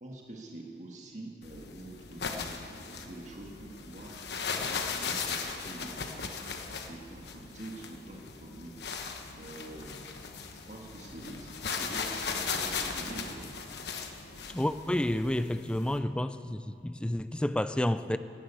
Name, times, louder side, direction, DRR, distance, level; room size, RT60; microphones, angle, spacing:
voice 1, 0.0-4.2 4.6-6.3 6.8-8.8 9.3-10.1 10.5-13.5, right 1 dB, 40° right, -1 dB, 1.6 m, -46 dB
sound 1, 1.4-16.0, left 5 dB, 70° left, 1.1 m, -38 dB
voice 2, 14.5-18.2, left 1 dB, 5° left, 12 dB, 0.3 m, -30 dB
12.5 x 11.5 x 8.3 m, 2.7 s
head